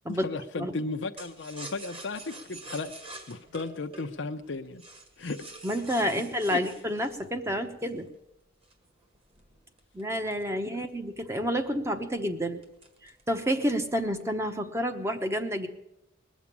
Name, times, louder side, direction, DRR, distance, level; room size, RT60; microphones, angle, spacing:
voice 1, 0.1-2.9 3.3-4.8 5.2-5.6 6.5-6.6, left 3 dB, 65° left, 5 dB, 0.6 m, -35 dB
sound 1, 1.2-8.1 8.6-11.1 11.4-11.5 11.8-12.2 12.6-13.3 13.6-14.2, right 2 dB, 30° right, 1.8 m, -46 dB
voice 2, 5.6-8.1 9.9-12.6 13.0-15.7, equal, 15° right, 7 dB, 1.0 m, -29 dB
20.5 x 7.3 x 8.5 m, 0.89 s
head